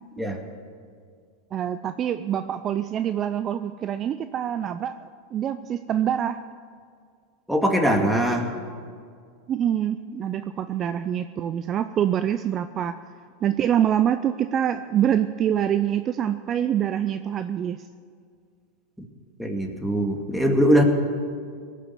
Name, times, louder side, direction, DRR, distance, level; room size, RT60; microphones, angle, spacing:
voice 1, 1.5-6.4 9.5-13.0 13.4-17.8, right 10 dB, 35° right, 11 dB, 0.5 m, -25 dB
voice 2, 7.5-8.5 19.4-20.8, equal, ahead, 2 dB, 2.2 m, -21 dB
18.0 x 7.6 x 9.7 m, 2.1 s
hypercardioid pair, 105°, 0 cm